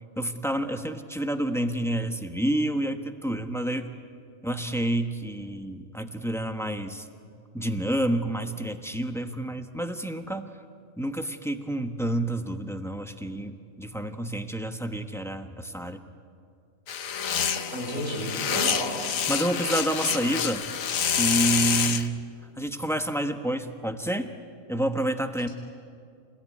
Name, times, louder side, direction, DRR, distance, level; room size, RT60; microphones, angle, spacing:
voice 1, 0.2-3.9 4.4-7.1 7.5-10.5 11.0-16.0 19.3-20.6 21.2-22.2 22.6-24.3 24.7-25.5, right 1 dB, ahead, 6 dB, 1.1 m, -29 dB
sound 1, 16.9-22.1, left 8 dB, 75° left, 1.4 m, -27 dB
voice 2, 17.7-18.9, equal, 70° right, -1 dB, 6.5 m, -32 dB
29.0 x 16.5 x 9.8 m, 2.3 s
omnidirectional pair, 1.4 m